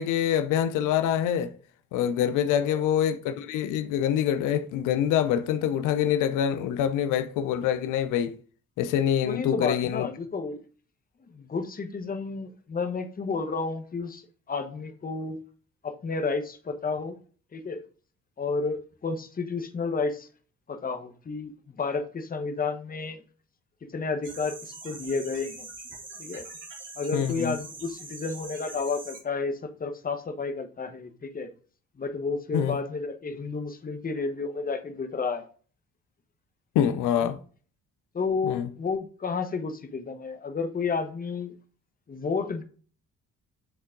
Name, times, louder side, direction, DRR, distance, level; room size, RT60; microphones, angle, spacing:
voice 1, 0.0-1.5 1.9-8.4 8.8-10.1 27.1-27.6 32.5-32.8 36.8-37.4 38.5-38.7, left 9 dB, 90° left, 0.5 m, -25 dB
voice 2, 2.5-2.8 9.2-10.6 11.2-15.4 15.8-17.2 17.5-17.8 18.4-20.3 20.7-23.2 23.9-25.7 26.2-26.5 27.0-31.5 32.0-35.4 37.2-37.3 38.1-41.5 42.1-42.6, left 4 dB, 30° left, 0.9 m, -31 dB
sound 1, 24.2-29.2, right 3 dB, 40° right, 3.0 m, -43 dB
7.0 x 3.7 x 3.7 m
cardioid pair, 90°, 30 cm